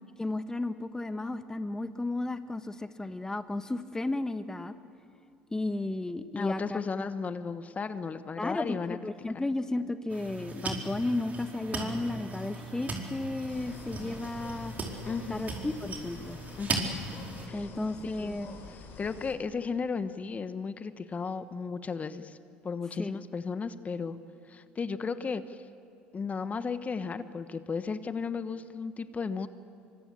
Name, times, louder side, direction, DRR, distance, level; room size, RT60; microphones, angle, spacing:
voice 1, 0.2-4.7 5.5-6.8 8.4-14.7 15.3-16.4 17.5-18.6 23.0-23.2, left 2 dB, 10° left, 10 dB, 1.2 m, -33 dB
voice 2, 6.3-9.0 9.3-9.5 15.1-15.4 16.6-16.9 17.5-17.7 18.0-18.4 19.0-22.4 22.6-24.2 24.5-25.6 26.1-29.5, left 5 dB, 30° left, 11 dB, 1.3 m, -34 dB
sound 1, 10.1-17.5, right 2 dB, 35° right, 4.9 m, -37 dB
sound 2, 13.5-19.3, left 4 dB, 55° left, 5.5 m, -47 dB
25.5 x 24.0 x 8.7 m, 2.6 s
hypercardioid pair, 70°, 5 cm